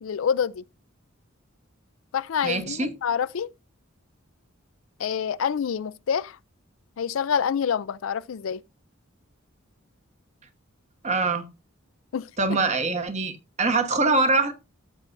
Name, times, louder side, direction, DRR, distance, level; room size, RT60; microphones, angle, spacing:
voice 1, 0.0-0.6 2.1-3.5 5.0-6.4 7.0-8.6 12.1-12.3, left 7 dB, 75° left, 0.4 m, -27 dB
voice 2, 2.4-2.9 11.0-11.4 12.4-14.5, right 3 dB, 35° right, 1.1 m, -23 dB
14.5 x 7.0 x 2.6 m
head